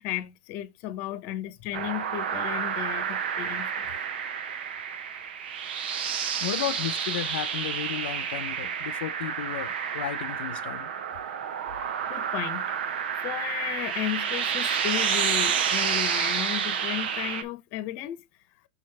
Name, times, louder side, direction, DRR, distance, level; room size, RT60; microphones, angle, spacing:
voice 1, 0.0-3.9 12.1-18.2, left 13 dB, 40° left, 1.0 m, -34 dB
sound 1, 1.7-17.4, right 7 dB, 75° right, 1.1 m, -30 dB
voice 2, 6.4-10.9, left 11 dB, 80° left, 0.7 m, -34 dB
6.4 x 5.2 x 3.4 m
supercardioid pair, 160°, 5 cm